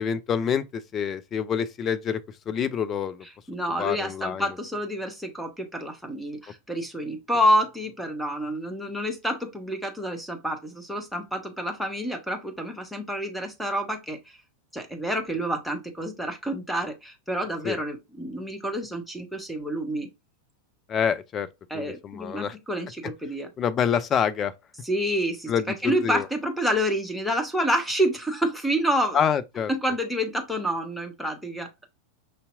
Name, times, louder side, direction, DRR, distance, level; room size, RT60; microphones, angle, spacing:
voice 1, 0.0-2.2 2.5-3.2 3.8-4.5 17.6-17.8 20.9-21.5 21.7-22.6 23.6-24.5 25.5-26.3 29.1-29.7, left 7 dB, 25° left, 0.4 m, -26 dB
voice 2, 3.5-14.4 14.7-20.1 21.7-23.5 24.8-29.2 29.7-31.7, equal, ahead, 0.9 m, -28 dB
5.3 x 2.8 x 2.5 m
figure-of-eight pair, 90°, 0 cm